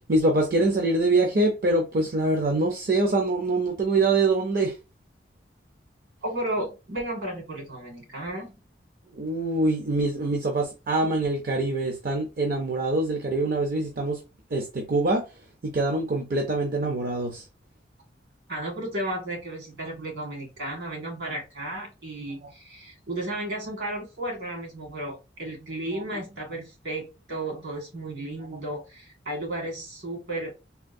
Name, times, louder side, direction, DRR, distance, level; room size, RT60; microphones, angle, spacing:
voice 1, 0.1-4.7 9.1-14.2 14.5-15.2 15.6-17.4, right 2 dB, 55° right, 0.6 m, -24 dB
voice 2, 6.2-8.6 18.5-30.5, right 1 dB, 70° right, 1.8 m, -33 dB
3.5 x 2.3 x 2.6 m
head